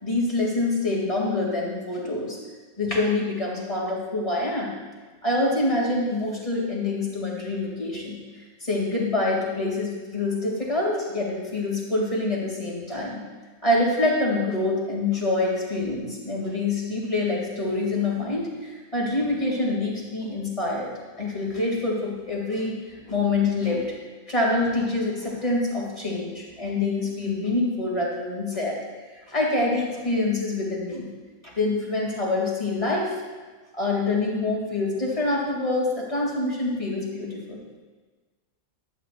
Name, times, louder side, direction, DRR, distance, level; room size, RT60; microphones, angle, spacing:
voice 1, 0.0-2.4 2.8-4.8 5.2-8.2 8.6-13.2 13.6-20.9 21.2-23.8 24.3-28.8 29.3-31.1 31.4-33.1 33.7-37.6, left 2 dB, 25° left, -3 dB, 2.7 m, -26 dB
15.0 x 12.0 x 2.6 m, 1.4 s
omnidirectional pair, 1.5 m